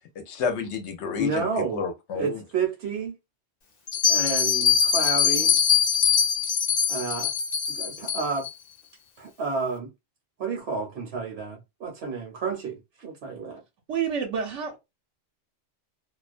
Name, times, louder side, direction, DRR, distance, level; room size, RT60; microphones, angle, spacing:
voice 1, 0.2-2.4, left 6 dB, 75° left, 0.9 m, -30 dB
voice 2, 1.2-1.8 2.1-3.1 4.1-5.6 6.9-7.3 7.7-8.5 9.2-9.9 10.4-13.6, right 4 dB, 65° right, 0.9 m, -30 dB
Bell, 3.9-8.5, left 7 dB, 50° left, 0.6 m, -22 dB
voice 3, 13.9-14.8, right 7 dB, 90° right, 0.9 m, -28 dB
2.3 x 2.1 x 2.4 m
omnidirectional pair, 1.2 m